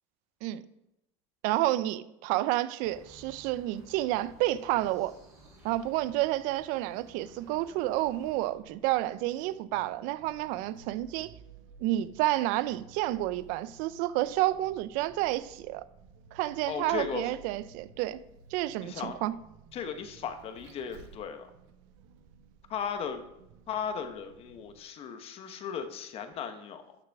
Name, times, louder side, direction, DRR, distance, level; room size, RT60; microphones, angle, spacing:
voice 1, 1.4-5.1 5.6-11.3 11.8-15.8 16.3-18.2 18.5-19.3, right 16 dB, 65° right, 0.5 m, -30 dB
sound 1, 2.8-8.4, right 1 dB, 20° right, 3.4 m, -55 dB
Vehicle, 7.9-24.8, right 6 dB, 85° right, 1.1 m, -55 dB
voice 2, 16.7-17.3 18.8-19.2 19.7-21.5 22.7-23.2 23.7-27.0, left 7 dB, 40° left, 1.1 m, -36 dB
12.0 x 6.6 x 3.5 m
supercardioid pair, 130°, 15 cm